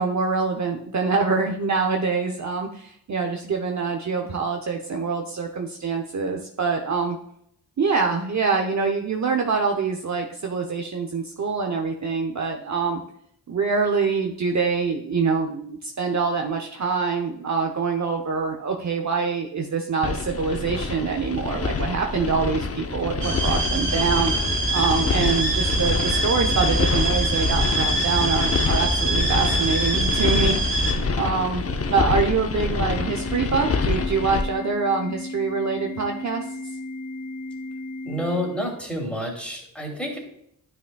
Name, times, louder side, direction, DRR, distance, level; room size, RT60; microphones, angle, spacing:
voice 1, 0.0-7.2 7.8-13.0 13.5-31.6 31.9-36.4, right 5 dB, 40° right, 2 dB, 0.8 m, -25 dB
sound 1, 20.0-34.4, left 4 dB, 35° left, 0.7 m, -26 dB
sound 2, 23.2-30.9, right 2 dB, 75° right, 2.8 m, -24 dB
Organ, 32.9-38.9, left 2 dB, 70° left, 2.8 m, -35 dB
voice 2, 38.0-40.2, equal, 5° left, 0 dB, 2.7 m, -29 dB
9.6 x 6.0 x 2.3 m, 0.73 s
cardioid pair, 55°, 43 cm